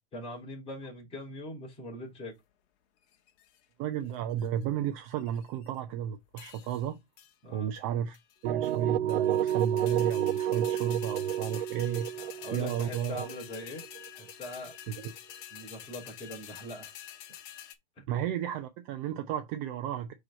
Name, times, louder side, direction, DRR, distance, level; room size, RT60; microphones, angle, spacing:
voice 1, 0.1-2.3 7.4-7.7 12.2-13.8 14.1-14.7 15.5-16.9 18.0-18.1, left 1 dB, 15° left, 4.0 m, -42 dB
sound 1, 3.1-3.6 4.1-4.6 5.1-5.8 6.4-6.9 7.2-7.3 7.8-7.9 8.1-8.8 9.1-17.7, left 11 dB, 35° left, 1.5 m, -48 dB
voice 2, 3.8-7.0 7.5-8.2 8.4-12.1 12.5-13.3 14.9-15.1 18.1-20.1, right 9 dB, 30° right, 0.8 m, -33 dB
sound 2, 8.4-14.3, right 11 dB, 65° right, 0.5 m, -30 dB
6.2 x 4.8 x 4.0 m
hypercardioid pair, 150°, 33 cm